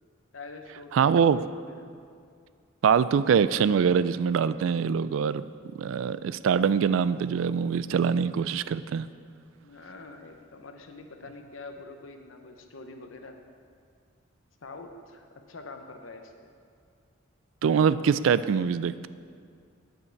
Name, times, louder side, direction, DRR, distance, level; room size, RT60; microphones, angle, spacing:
voice 1, 0.3-1.9 9.6-13.4 14.6-16.5, left 3 dB, 85° left, 5 dB, 0.9 m, -45 dB
voice 2, 0.9-1.4 2.8-5.4 5.8-9.1 17.6-19.1, right 7 dB, 85° right, 15 dB, 0.3 m, -24 dB
9.5 x 8.8 x 4.6 m, 2.3 s
head